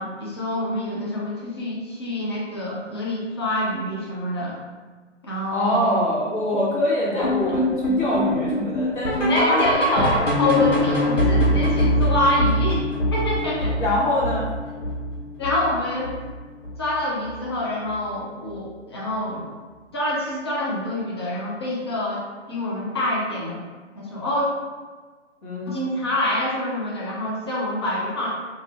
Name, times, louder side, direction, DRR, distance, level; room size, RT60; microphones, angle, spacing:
voice 1, 0.0-4.6 5.2-6.0 7.1-7.3 9.1-12.8 13.1-13.8 15.4-16.1 16.8-19.5 19.9-23.6 23.9-24.5 25.7-28.3, left 1 dB, 25° left, -6 dB, 0.4 m, -26 dB
voice 2, 5.5-9.7 13.7-14.5 25.4-25.7, left 1 dB, 40° left, -7 dB, 1.3 m, -24 dB
sound 1, 7.2-16.3 16.6-16.9 17.2-17.3 17.9-18.0 18.5-18.6, equal, 85° left, 0.9 m, -23 dB
2.6 x 2.5 x 3.1 m, 1.4 s
figure-of-eight pair, 135°, 36 cm